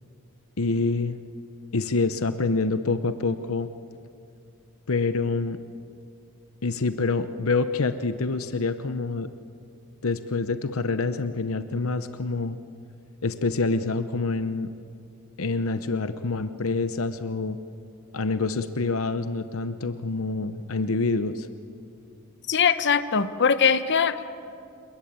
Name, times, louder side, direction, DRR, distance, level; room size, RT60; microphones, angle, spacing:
voice 1, 0.6-1.2 1.7-3.7 4.9-5.6 6.6-9.3 10.0-12.6 13.2-14.7 15.4-17.6 18.1-21.5, left 3 dB, 80° left, 11 dB, 0.9 m, -26 dB
voice 2, 22.5-24.3, left 6 dB, 55° left, 11 dB, 1.0 m, -21 dB
28.5 x 22.0 x 8.8 m, 2.5 s
head